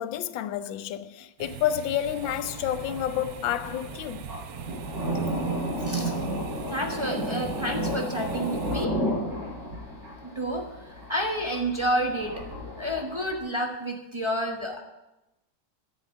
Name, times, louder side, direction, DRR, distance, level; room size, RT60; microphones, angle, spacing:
voice 1, 0.0-4.3, left 11 dB, 80° left, 1.3 m, -29 dB
sound 1, 1.4-8.9, right 10 dB, 75° right, 1.3 m, -41 dB
Thunder, 2.1-13.4, equal, 40° right, 4.9 m, -33 dB
voice 2, 5.8-6.1 6.7-9.0 10.2-12.4 12.8-14.8, equal, 20° right, 0.9 m, -30 dB
10.0 x 7.5 x 8.2 m
omnidirectional pair, 2.1 m